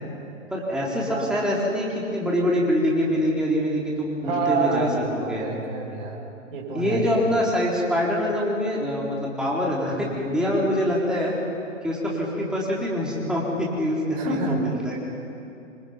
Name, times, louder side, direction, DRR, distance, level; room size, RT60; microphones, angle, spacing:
voice 1, 0.5-5.4 6.7-11.3 11.8-15.0, equal, ahead, -5 dB, 4.2 m, -25 dB
voice 2, 4.2-6.2 6.5-7.3 14.1-14.7 15.2-15.3, right 3 dB, 45° right, -1 dB, 6.4 m, -27 dB
27.5 x 25.5 x 5.4 m, 2.7 s
figure-of-eight pair, 120°, 38 cm